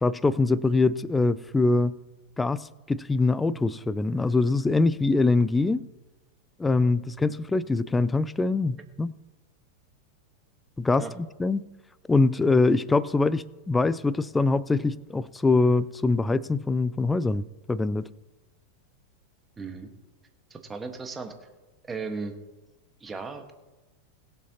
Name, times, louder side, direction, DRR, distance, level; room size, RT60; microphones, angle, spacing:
voice 1, 0.0-1.9 2.4-5.8 6.6-9.1 10.8-11.6 12.1-18.1, left 3 dB, 10° left, 19 dB, 0.4 m, -23 dB
voice 2, 19.6-19.9 20.5-21.3 21.9-22.3 23.0-23.5, right 4 dB, 15° right, 6 dB, 1.4 m, -36 dB
21.5 x 7.5 x 2.9 m, 1.1 s
figure-of-eight pair, 90°, 0 cm